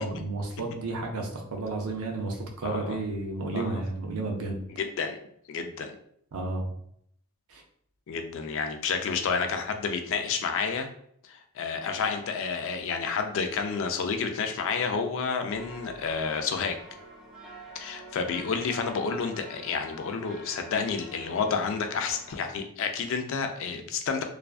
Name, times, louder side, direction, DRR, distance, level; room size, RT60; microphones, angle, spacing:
voice 1, 0.0-4.6 6.3-6.7 7.5-7.6, right 2 dB, 85° right, 2 dB, 0.5 m, -32 dB
voice 2, 2.6-3.0 3.5-3.8 4.8-5.2 5.5-5.9 8.1-10.9 11.2-16.8 17.7-24.2, left 5 dB, 60° left, 6 dB, 0.3 m, -30 dB
sound 1, 15.5-22.3, right 2 dB, ahead, 0.9 m, -47 dB
2.4 x 2.2 x 2.3 m, 0.68 s
head